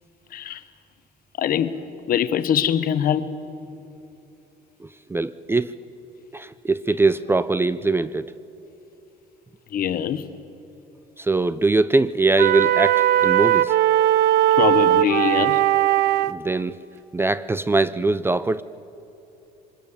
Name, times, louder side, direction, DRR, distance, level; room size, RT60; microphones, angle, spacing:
voice 1, 0.3-0.6 1.4-1.8 2.1-3.3 9.7-10.3 14.6-15.6, left 9 dB, 60° left, 1.1 m, -23 dB
voice 2, 4.8-5.7 6.3-8.4 11.2-13.7 16.3-16.8 17.1-18.6, right 3 dB, 15° right, 0.4 m, -22 dB
sound 1, 12.4-16.4, right 13 dB, 75° right, 0.6 m, -18 dB
24.0 x 20.0 x 7.3 m
cardioid pair, 110°, 17 cm